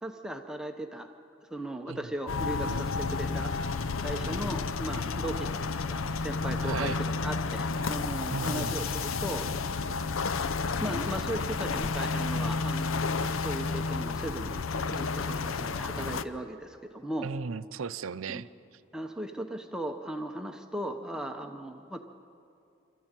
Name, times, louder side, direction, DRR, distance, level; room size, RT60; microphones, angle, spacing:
voice 1, 0.0-1.1 1.5-3.5 4.0-9.4 10.8-13.1 13.4-14.6 14.9-17.3 18.3-18.4 18.9-22.0, right 1 dB, 5° right, 4 dB, 0.8 m, -37 dB
sound 1, 2.3-16.2, left 4 dB, 80° left, 0.6 m, -31 dB
voice 2, 6.6-7.0 8.3-8.8 17.2-18.5, right 5 dB, 85° right, 14 dB, 0.6 m, -35 dB
26.5 x 13.5 x 9.0 m, 2.6 s
head